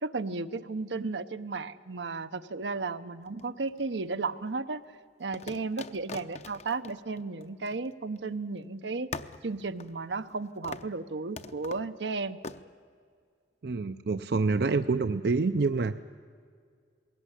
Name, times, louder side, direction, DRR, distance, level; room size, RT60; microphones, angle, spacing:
voice 1, 0.0-4.8 5.2-9.1 9.4-12.4, right 3 dB, 80° right, 10 dB, 0.9 m, -34 dB
sound 1, 3.3-4.1 5.3-8.3 8.6-8.7 9.1-10.4 10.6-11.0 11.4-11.9 12.4-12.6, left 4 dB, 40° left, 0.7 m, -43 dB
voice 2, 13.6-16.0, right 3 dB, 60° right, 10 dB, 0.5 m, -27 dB
21.0 x 17.5 x 9.9 m, 2.1 s
head